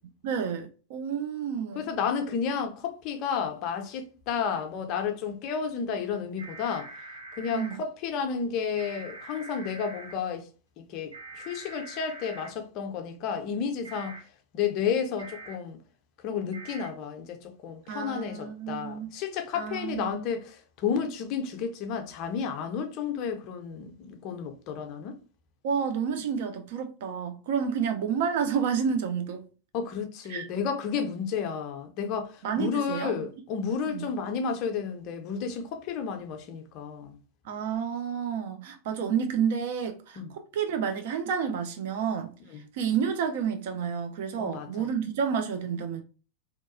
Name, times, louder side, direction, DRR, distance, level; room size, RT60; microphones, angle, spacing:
voice 1, 0.2-1.9 7.5-7.8 17.9-19.1 19.5-20.3 25.6-29.5 30.3-30.5 32.4-33.2 33.9-34.1 37.4-46.0, right 7 dB, 55° right, 0.4 m, -30 dB
voice 2, 1.8-6.9 7.3-10.5 10.8-14.2 14.5-15.8 16.2-25.2 29.7-37.2 40.2-40.3 42.5-42.6 44.4-44.7, left 6 dB, 40° left, 0.5 m, -32 dB
sound 1, 6.4-7.7 8.8-10.1 11.1-12.5 13.8-14.2 15.2-15.5 16.5-16.9, right 3 dB, 85° right, 0.9 m, -44 dB
2.7 x 2.2 x 2.5 m
figure-of-eight pair, 90°, 0 cm